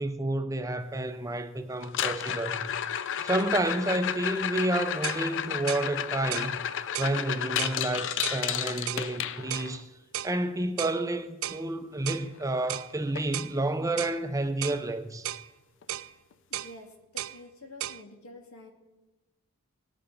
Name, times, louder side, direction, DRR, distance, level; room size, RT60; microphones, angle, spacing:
voice 1, 0.0-2.7 3.2-6.6 7.0-9.9 10.2-15.3, right 1 dB, 15° right, 0.5 m, -30 dB
sound 1, 1.8-9.8 12.1-12.2 12.4-12.7 13.2-13.3 13.8-13.9 15.8-15.9, left 9 dB, 60° left, 0.5 m, -32 dB
sound 2, 4.6-4.7 5.0-5.2 5.7-5.9 6.3-6.5 6.9-7.2 7.6-7.8 8.2-8.4 8.9-9.1 9.5-9.7 10.1-10.4 10.8-11.0 11.4-11.6 12.1-12.3 12.7-12.9 13.3-13.6 14.0-14.2 14.6-14.8 15.2-15.5 15.9-16.1 16.5-16.7 17.2-17.4 17.8-18.0, right 12 dB, 70° right, 0.4 m, -35 dB
voice 2, 16.5-18.7, left 1 dB, 85° left, 1.9 m, -48 dB
18.5 x 6.8 x 5.2 m
head